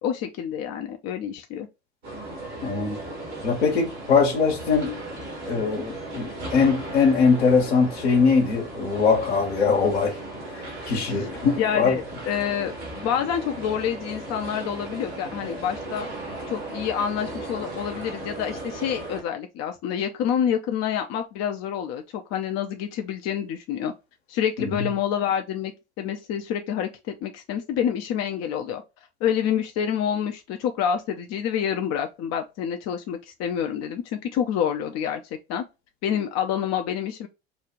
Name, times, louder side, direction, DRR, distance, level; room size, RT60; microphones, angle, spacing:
voice 1, 0.0-1.7 11.1-11.3 11.6-16.1 16.5-23.9 24.3-28.8 29.2-35.2 35.5-35.6 36.0-37.3, left 8 dB, 50° left, 0.7 m, -27 dB
sound 1, 2.0-19.2, right 2 dB, 90° right, 2.2 m, -36 dB
voice 2, 2.6-3.0 3.4-5.0 5.5-10.1 10.9-12.0 24.6-24.7, left 5 dB, 85° left, 1.4 m, -21 dB
5.3 x 2.4 x 3.0 m
hypercardioid pair, 65°, 32 cm